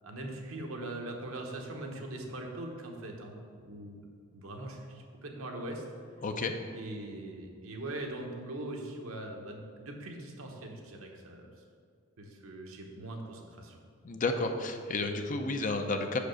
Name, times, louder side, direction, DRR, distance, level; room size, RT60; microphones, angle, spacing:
voice 1, 0.0-3.4 3.6-4.0 4.3-5.8 6.7-11.5 12.2-13.8, right 1 dB, 80° right, 2 dB, 1.0 m, -41 dB
voice 2, 6.2-6.5 14.0-16.2, left 3 dB, 40° left, 6 dB, 0.5 m, -31 dB
5.8 x 5.0 x 6.3 m, 2.2 s
head